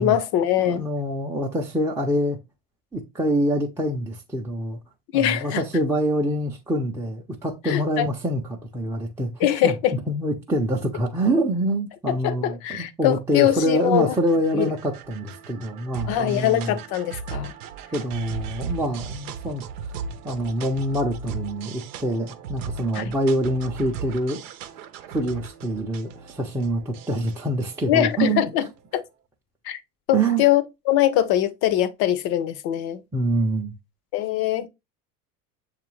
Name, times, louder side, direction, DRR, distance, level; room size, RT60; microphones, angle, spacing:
voice 1, 0.0-0.8 5.1-5.6 7.6-8.1 9.4-9.9 12.1-14.1 14.5-14.7 16.1-17.5 22.9-23.1 27.9-28.7 28.9-29.0 29.6-29.8 30.1-33.0 34.1-34.7, left 12 dB, 55° left, 0.7 m, -22 dB
voice 2, 0.6-2.4 2.9-4.8 5.1-16.8 17.9-19.6 20.2-24.4 25.1-28.4 30.1-30.4 33.1-33.7, right 1 dB, 5° right, 0.5 m, -25 dB
sound 1, 13.3-28.8, right 5 dB, 75° right, 0.7 m, -37 dB
6.6 x 2.5 x 3.0 m
hypercardioid pair, 85°, 45 cm